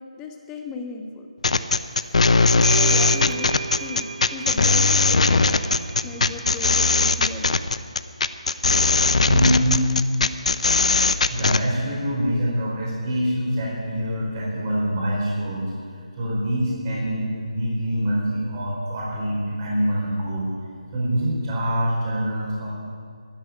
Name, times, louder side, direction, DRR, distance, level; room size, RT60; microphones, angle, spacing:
voice 1, 0.2-1.3 2.6-3.5 3.8-5.5 6.0-7.6, left 4 dB, 15° left, 4 dB, 1.2 m, -36 dB
sound 1, 1.4-11.6, left 3 dB, 65° left, 0.7 m, -19 dB
sound 2, 2.0-2.1 2.6-7.5, right 5 dB, 50° right, 1.1 m, -35 dB
voice 2, 9.2-9.9 11.3-20.5 20.9-22.7, equal, 30° right, -5 dB, 4.5 m, -25 dB
12.0 x 11.0 x 9.4 m, 2.2 s
figure-of-eight pair, 155°, 4 cm